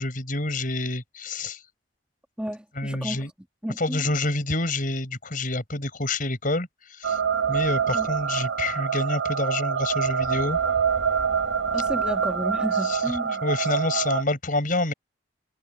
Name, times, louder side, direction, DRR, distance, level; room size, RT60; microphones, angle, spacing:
voice 1, 0.0-1.6 2.8-3.3 3.8-7.2 7.5-10.6 12.8-14.9, left 2 dB, 45° left, 5.8 m, -28 dB
voice 2, 2.4-3.2 3.6-4.0 7.9-8.1 11.7-13.4, equal, 5° right, 1.4 m, -32 dB
sound 1, 7.0-14.2, right 6 dB, 75° right, 0.8 m, -25 dB
head